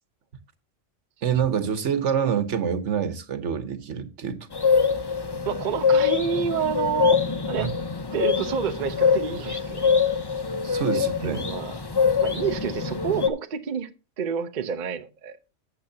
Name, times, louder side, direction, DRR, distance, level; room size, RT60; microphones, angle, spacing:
voice 1, 1.2-4.5 7.6-7.7 10.6-11.4, right 7 dB, 70° right, 1.3 m, -26 dB
sound 1, 4.5-13.3, left 6 dB, 25° left, 0.6 m, -24 dB
voice 2, 5.5-7.7 8.1-9.9 10.9-11.7 12.2-13.9 14.2-15.4, right 7 dB, 45° right, 0.7 m, -29 dB
12.5 x 7.6 x 2.8 m
omnidirectional pair, 1.3 m